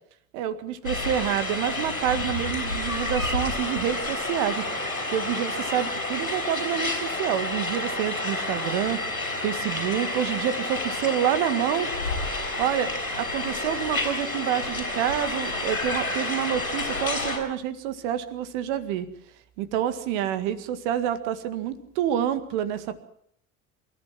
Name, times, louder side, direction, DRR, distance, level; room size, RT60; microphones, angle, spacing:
voice 1, 0.3-4.6 5.1-9.0 9.4-11.9 12.6-19.1 19.6-23.0, right 10 dB, 55° right, 12 dB, 2.0 m, -28 dB
sound 1, 0.8-17.4, left 2 dB, 85° left, 4.7 m, -29 dB
28.0 x 14.5 x 7.4 m, 0.70 s
figure-of-eight pair, 65°, 41 cm